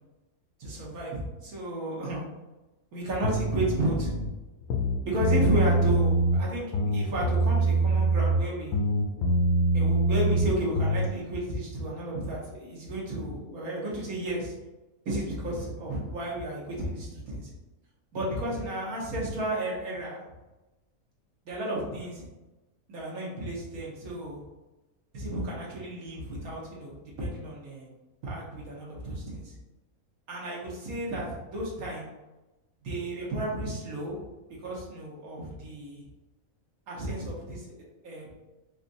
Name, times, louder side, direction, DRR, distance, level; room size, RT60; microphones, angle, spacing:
voice 1, 0.6-2.2 2.9-4.1 5.0-8.8 9.7-14.6 15.0-17.5 18.1-20.2 21.4-22.2 22.9-24.4 25.1-27.9 28.2-29.5 30.3-32.1 32.8-34.2 34.6-36.1 36.9-38.4, right 1 dB, 80° right, -4 dB, 1.5 m, -33 dB
sound 1, 3.2-4.3 4.6-6.4 6.7-8.5 8.7-11.1, right 1 dB, 90° left, 1.1 m, -24 dB
5.0 x 2.5 x 2.6 m, 1.0 s
omnidirectional pair, 1.5 m